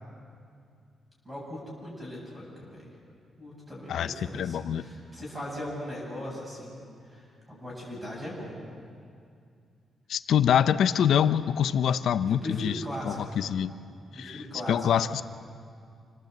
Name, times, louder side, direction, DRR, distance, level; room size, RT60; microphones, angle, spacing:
voice 1, 1.2-2.8 3.4-8.6 11.8-11.9 12.3-13.4 14.1-14.8, left 1 dB, 15° right, -3 dB, 7.9 m, -39 dB
voice 2, 3.9-4.8 10.1-13.7 14.1-15.2, left 9 dB, 75° left, 12 dB, 0.7 m, -25 dB
27.0 x 19.5 x 8.0 m, 2.3 s
wide cardioid pair, 145°, 0 cm